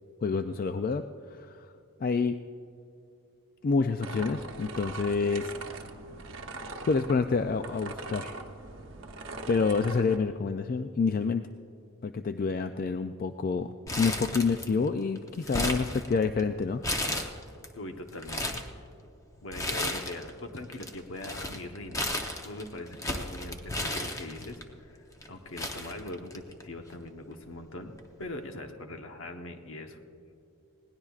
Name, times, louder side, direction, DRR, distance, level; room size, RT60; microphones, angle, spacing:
voice 1, 0.2-1.7 2.0-2.4 3.6-5.5 6.9-8.3 9.5-11.4 12.0-16.8, left 4 dB, 40° left, 8 dB, 0.3 m, -28 dB
sound 1, 4.0-10.2, right 2 dB, 60° right, 0.9 m, -41 dB
Crumpling crinkling, 13.9-14.9 15.2-16.4 16.8-17.7 18.1-18.7 19.5-20.3 20.6-24.6 25.2-25.3 25.6-26.6 26.9-27.0 28.0-28.2, left 1 dB, 15° left, 0.8 m, -33 dB
voice 2, 17.7-18.6 19.4-27.9 28.2-30.0, left 1 dB, 65° left, 5 dB, 1.0 m, -42 dB
20.5 x 18.0 x 2.4 m, 2.6 s
head